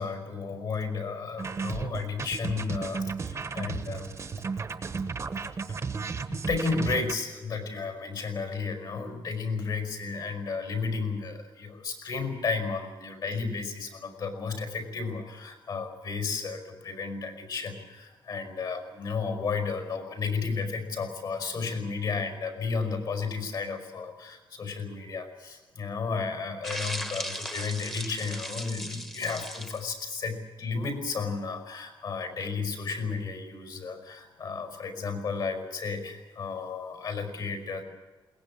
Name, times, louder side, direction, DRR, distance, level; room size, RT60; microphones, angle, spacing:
voice 1, 0.0-4.1 5.4-5.5 6.3-37.8, left 4 dB, 55° left, 6 dB, 5.2 m, -33 dB
sound 1, 1.4-7.1, right 5 dB, 35° right, 1.1 m, -34 dB
sound 2, 26.6-29.8, equal, 5° left, 1.3 m, -37 dB
21.5 x 19.0 x 8.8 m, 1.2 s
wide cardioid pair, 155°, 9 cm